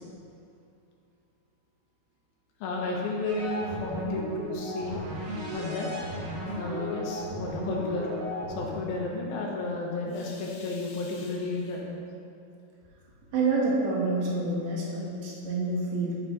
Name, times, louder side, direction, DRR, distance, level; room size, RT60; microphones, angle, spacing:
voice 1, 2.6-5.0 5.5-6.0 6.6-8.1 8.5-11.9, left 3 dB, 75° left, -2 dB, 3.0 m, -32 dB
sound 1, 3.3-9.0, equal, 90° right, 1.1 m, -35 dB
voice 2, 13.3-16.2, right 3 dB, 60° right, -4 dB, 2.9 m, -28 dB
10.0 x 8.7 x 3.2 m, 2.6 s
omnidirectional pair, 4.5 m